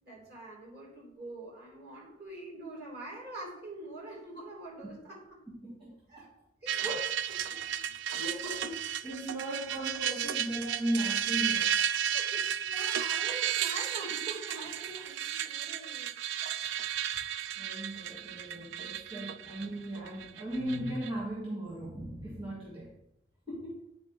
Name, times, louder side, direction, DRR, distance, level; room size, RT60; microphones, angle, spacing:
voice 1, 0.0-5.4 6.1-6.8 7.6-7.7 12.0-16.2 16.4-16.6, right 2 dB, 60° right, -5 dB, 2.7 m, -45 dB
voice 2, 5.6-6.3 6.7-7.0 7.3-7.7 8.0-11.7 12.3-12.5 17.6-22.9 23.5-23.8, right 1 dB, 30° right, -6 dB, 1.7 m, -37 dB
sound 1, 6.7-21.1, right 10 dB, 75° right, 0.3 m, -33 dB
8.8 x 3.8 x 3.7 m, 0.81 s
head